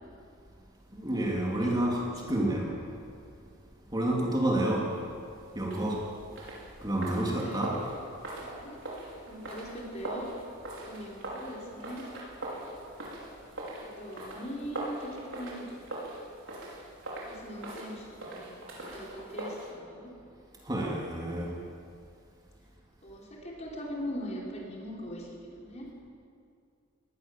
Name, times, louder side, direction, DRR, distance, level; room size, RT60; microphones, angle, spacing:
voice 1, 0.9-2.8 3.9-4.9 5.5-6.0 6.8-7.8 20.6-21.5, right 1 dB, 20° right, -3 dB, 3.4 m, -29 dB
sound 1, 5.6-19.7, right 1 dB, 65° right, 5.6 m, -41 dB
voice 2, 7.2-7.6 8.3-8.8 9.3-10.3 10.8-12.0 14.0-16.0 17.2-20.1 23.0-25.9, equal, 35° left, -3 dB, 5.0 m, -41 dB
21.5 x 19.5 x 7.7 m, 2.4 s
head